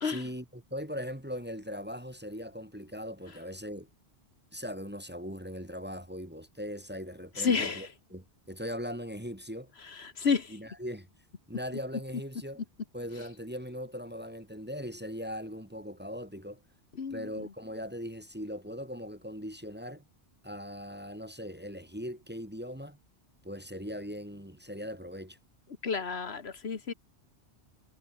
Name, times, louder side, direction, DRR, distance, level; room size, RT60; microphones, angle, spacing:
voice 1, 0.0-3.9 4.5-9.7 10.5-11.1 11.5-12.6 12.9-16.6 17.1-20.1 20.4-23.0 23.4-25.4, equal, 10° right, 2.0 m, -40 dB
voice 2, 7.4-7.9 10.0-10.5 17.0-17.3 25.8-26.9, left 5 dB, 65° left, 1.7 m, -30 dB
omnidirectional pair, 1.1 m